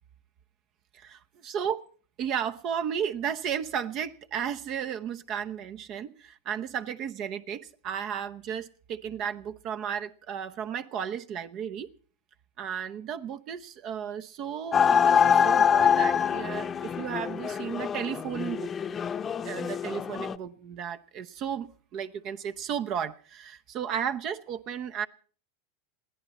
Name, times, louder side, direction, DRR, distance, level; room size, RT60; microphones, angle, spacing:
voice 1, 0.9-1.8 2.2-11.9 12.6-18.7 19.4-25.1, right 8 dB, 45° right, 0.9 m, -34 dB
sound 1, 14.7-20.3, left 7 dB, 25° left, 0.8 m, -25 dB
21.5 x 16.0 x 4.2 m
hypercardioid pair, 110°, 0 cm